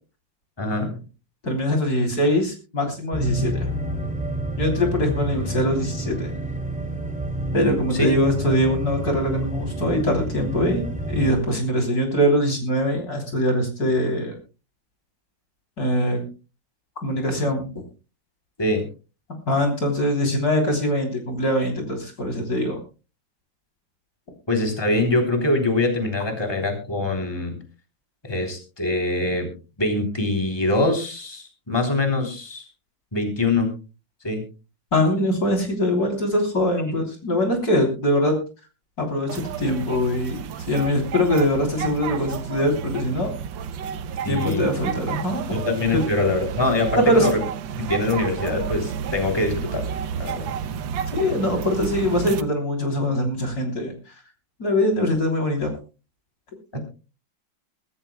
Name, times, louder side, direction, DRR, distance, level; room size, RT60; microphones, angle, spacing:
voice 1, 0.6-1.0 7.9-8.1 18.6-18.8 24.5-27.6 28.2-29.5 29.8-32.6 33.1-33.7 34.2-34.4 44.2-44.6 45.5-47.4 47.8-49.8 50.2-50.5 56.7-56.8, left 2 dB, 15° left, 3 dB, 3.4 m, -23 dB
voice 2, 1.4-3.7 4.6-6.3 7.5-14.4 15.8-16.2 17.0-17.7 19.5-22.8 34.9-38.4 39.0-43.3 44.3-45.7 47.0-47.3 51.1-54.1 54.6-55.7 56.7-56.8, left 1 dB, 55° left, 2 dB, 3.8 m, -22 dB
sound 1, 3.1-11.4, right 1 dB, 5° right, 2.5 m, -29 dB
sound 2, 39.3-52.4, right 7 dB, 80° right, 1.6 m, -31 dB
23.0 x 14.0 x 2.2 m, 0.33 s
omnidirectional pair, 2.0 m